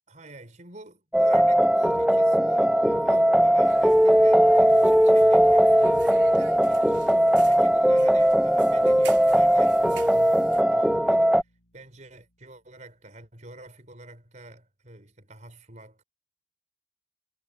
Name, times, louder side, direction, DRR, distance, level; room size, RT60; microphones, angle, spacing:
voice 1, 0.1-11.4 11.7-16.0, right 2 dB, 40° right, 4.7 m, -47 dB
sound 1, 1.1-11.4, equal, 5° right, 0.4 m, -19 dB
sound 2, 3.6-10.6, right 5 dB, 65° right, 3.2 m, -47 dB
Bass guitar, 8.8-12.7, equal, 75° left, 5.4 m, -57 dB
head